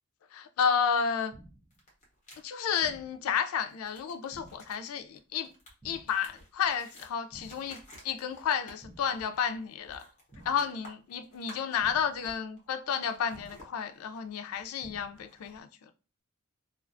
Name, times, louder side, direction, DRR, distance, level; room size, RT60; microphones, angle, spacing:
voice 1, 0.3-1.4 2.4-5.5 5.8-10.1 10.4-15.9, left 7 dB, 90° left, 0.3 m, -31 dB
sound 1, 1.3-1.8 2.8-3.3 4.3-4.8 5.8-6.3 7.3-7.8 8.8-9.3 10.3-10.8 11.8-12.3 13.3-13.8 14.8-15.3, right 1 dB, 15° right, 0.8 m, -53 dB
sound 2, 1.7-2.4 3.7-12.7 13.0-15.6, equal, 35° left, 0.8 m, -54 dB
2.3 x 2.2 x 2.4 m
head